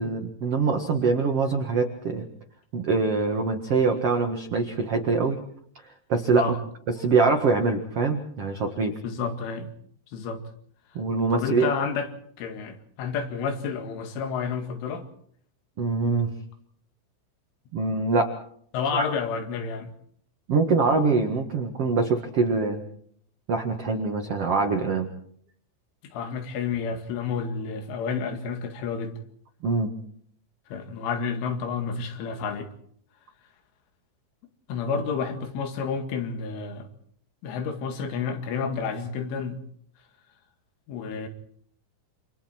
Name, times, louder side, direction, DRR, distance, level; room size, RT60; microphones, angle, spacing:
voice 1, 0.0-2.3 2.7-5.4 6.1-6.4 7.0-8.9 10.9-11.7 15.8-16.3 17.7-18.3 18.9-19.1 20.5-22.8 23.5-25.1 29.6-29.9, right 4 dB, 80° right, 1.3 m, -24 dB
voice 2, 9.0-9.7 10.1-10.4 11.3-12.1 12.4-15.1 18.7-19.9 26.0-29.1 30.7-32.7 34.7-36.9 37.4-39.6 40.9-41.3, left 5 dB, 75° left, 4.5 m, -30 dB
28.5 x 27.0 x 4.5 m
omnidirectional pair, 5.6 m